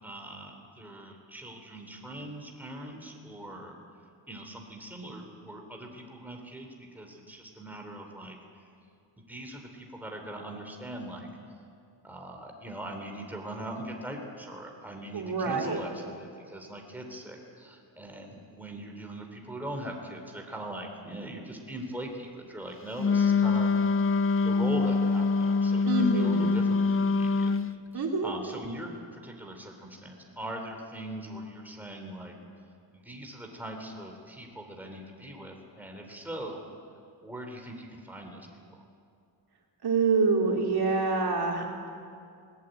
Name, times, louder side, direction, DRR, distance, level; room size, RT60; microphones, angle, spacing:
voice 1, 0.0-3.7 4.3-8.4 9.2-11.3 12.0-24.0 24.4-27.5 27.9-32.3 32.9-36.6 37.2-38.8, right 1 dB, 5° right, 1 dB, 3.2 m, -41 dB
voice 2, 15.1-15.8 25.8-26.6 27.9-28.3 39.8-41.9, right 4 dB, 55° right, 0 dB, 3.3 m, -26 dB
Wind instrument woodwind instrument, 23.0-27.7, left 4 dB, 30° left, 0.5 m, -24 dB
20.5 x 19.5 x 9.1 m, 2.4 s
wide cardioid pair, 130°, 45 cm